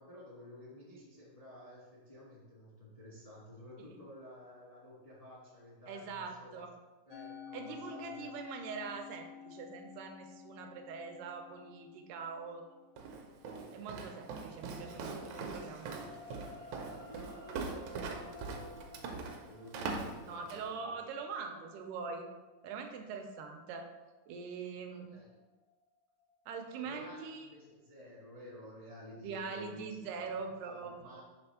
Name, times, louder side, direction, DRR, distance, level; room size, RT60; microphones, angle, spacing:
voice 1, 0.0-6.6 7.0-8.3 17.0-21.0 24.9-25.4 26.8-31.2, left 1 dB, 40° left, -6 dB, 0.5 m, -53 dB
voice 2, 5.9-6.7 7.5-12.6 13.7-16.0 20.3-22.3 22.6-23.9 24.3-25.1 26.5-27.5 29.2-31.2, right 5 dB, 90° right, 4 dB, 2.2 m, -43 dB
Musical instrument, 7.1-13.5, left 8 dB, 85° left, 1.6 m, -51 dB
Walk footsteps, 13.0-20.7, right 4 dB, 75° right, 1.8 m, -42 dB
sound 1, 13.3-25.7 26.2-26.3, left 3 dB, 65° left, 0.8 m, -56 dB
5.9 x 3.4 x 5.7 m, 1.2 s
omnidirectional pair, 3.6 m